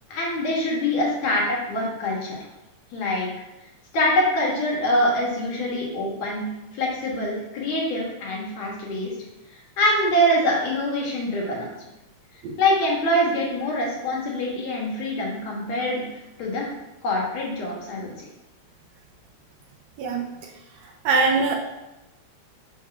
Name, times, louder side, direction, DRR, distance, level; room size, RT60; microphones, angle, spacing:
voice 1, 0.1-2.4 2.9-3.3 3.9-6.4 6.7-9.1 9.8-11.7 12.6-16.0 16.4-16.7 17.0-18.1, left 1 dB, 65° left, -3 dB, 2.4 m, -24 dB
voice 2, 21.1-21.6, right 4 dB, 75° right, 1 dB, 1.8 m, -21 dB
6.6 x 2.8 x 5.7 m, 0.94 s
omnidirectional pair, 3.4 m